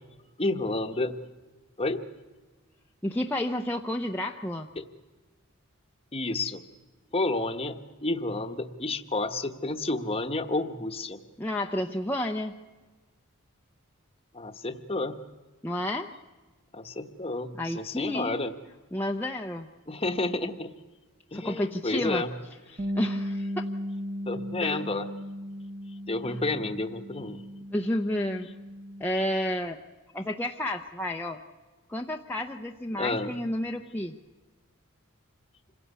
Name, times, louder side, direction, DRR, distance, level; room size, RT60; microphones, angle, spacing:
voice 1, 0.4-1.1 1.8-2.0 4.8-4.9 6.1-6.6 7.1-11.2 14.3-15.2 16.7-18.5 19.9-20.7 21.3-22.3 24.3-25.1 26.1-27.4 32.9-33.3, left 2 dB, 25° left, 6 dB, 1.0 m, -30 dB
voice 2, 3.0-4.7 11.4-12.5 15.6-16.1 17.6-18.4 18.9-19.7 21.3-22.2 22.7-23.7 24.6-24.8 26.3-26.4 27.7-28.5 29.0-29.8 30.1-31.4 31.9-34.1, left 1 dB, 10° left, 1 dB, 0.6 m, -31 dB
Bass guitar, 22.8-29.0, equal, 35° right, 1.2 m, -36 dB
26.5 x 16.5 x 8.2 m, 1.3 s
head